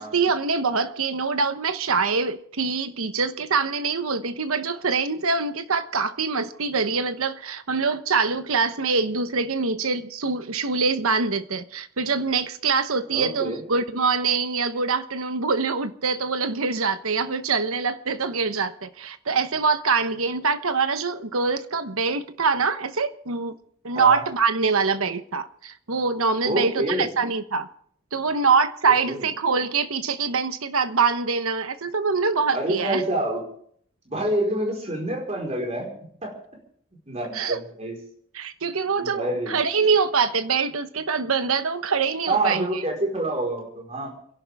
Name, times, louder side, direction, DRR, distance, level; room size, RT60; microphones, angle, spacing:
voice 1, 0.0-23.6 23.8-27.7 28.1-33.0 37.3-37.6 38.3-42.8, right 4 dB, 70° right, 1.1 m, -24 dB
voice 2, 13.1-13.6 23.9-24.2 26.4-27.1 29.1-29.2 32.5-33.4 34.1-35.9 36.2-36.3 37.1-37.9 39.0-39.6 42.3-44.1, right 1 dB, 30° right, 4.6 m, -27 dB
29.5 x 11.5 x 3.6 m
head